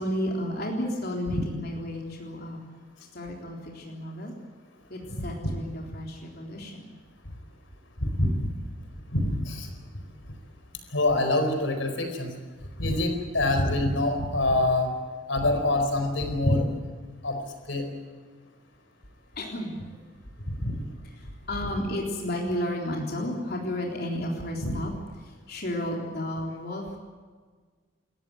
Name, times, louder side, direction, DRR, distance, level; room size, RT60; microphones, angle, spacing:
voice 1, 0.0-2.6 3.1-4.3 4.9-6.9 19.4-20.0 21.2-24.9 25.2-27.0, left 1 dB, 55° left, 0 dB, 3.7 m, -32 dB
voice 2, 5.2-5.6 8.0-8.5 9.1-9.7 10.9-12.3 12.8-14.9 15.3-16.7 17.2-17.4 17.7-17.9 20.5-20.7 24.6-24.8, left 2 dB, 85° left, 6 dB, 4.5 m, -25 dB
28.5 x 14.5 x 9.7 m, 1.5 s
head